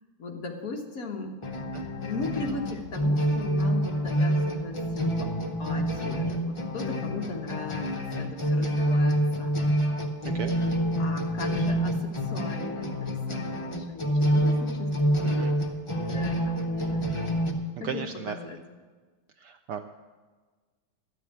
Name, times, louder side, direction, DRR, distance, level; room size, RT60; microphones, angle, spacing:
voice 1, 0.2-1.4 2.0-5.3 5.6-9.5 11.0-15.5 16.0-17.1 17.8-18.6, left 3 dB, 50° left, 2 dB, 1.4 m, -37 dB
sound 1, 1.4-17.5, equal, 30° left, 0.5 m, -27 dB
voice 2, 10.2-10.6 15.2-15.5 17.8-18.3 19.4-19.9, right 7 dB, 75° right, 8 dB, 1.0 m, -35 dB
13.5 x 7.0 x 8.8 m, 1.4 s
omnidirectional pair, 2.2 m